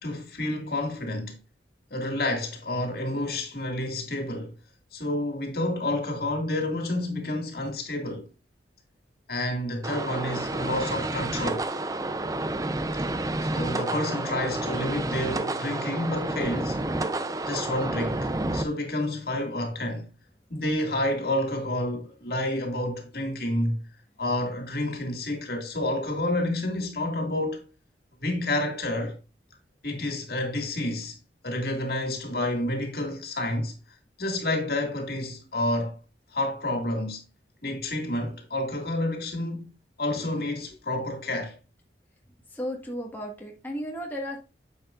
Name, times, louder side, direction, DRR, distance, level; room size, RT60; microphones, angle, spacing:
voice 1, 0.0-1.4 1.9-4.5 4.9-8.3 9.3-11.7 13.4-16.9 17.5-20.1 20.5-23.8 24.2-27.6 28.2-29.2 29.8-31.2 31.4-33.7 34.2-36.0 36.3-37.2 37.6-39.7 40.0-41.6, left 1 dB, 60° left, 2.2 m, -29 dB
sound 1, 9.8-18.6, right 2 dB, 20° right, 0.5 m, -30 dB
voice 2, 42.5-44.4, equal, 10° left, 1.6 m, -34 dB
9.9 x 7.0 x 2.5 m
head